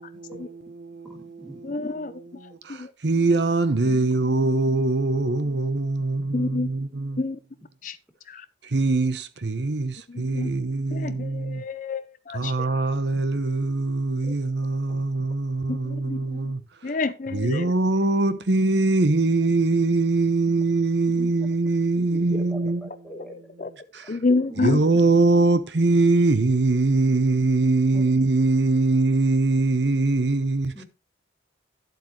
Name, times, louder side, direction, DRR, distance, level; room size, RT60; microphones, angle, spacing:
voice 1, 0.0-1.6 2.2-7.2 8.6-11.6 12.3-16.6 17.3-22.8 23.9-24.2 24.6-30.7, right 3 dB, 70° right, 0.8 m, -23 dB
voice 2, 1.0-1.7 5.4-5.6 14.9-15.0 21.1-21.3 22.0-23.5 24.3-25.0 27.9-28.1 30.7-30.9, equal, ahead, 2.6 m, -42 dB
voice 3, 1.6-2.1 2.4-2.9 6.3-6.7 7.2-7.4 7.8-8.0 8.3-8.5 10.1-10.5 10.9-12.7 14.3-14.4 15.7-16.4 16.8-17.7 23.6-23.7 24.1-24.8, left 3 dB, 45° left, 0.5 m, -28 dB
11.5 x 7.9 x 3.1 m
head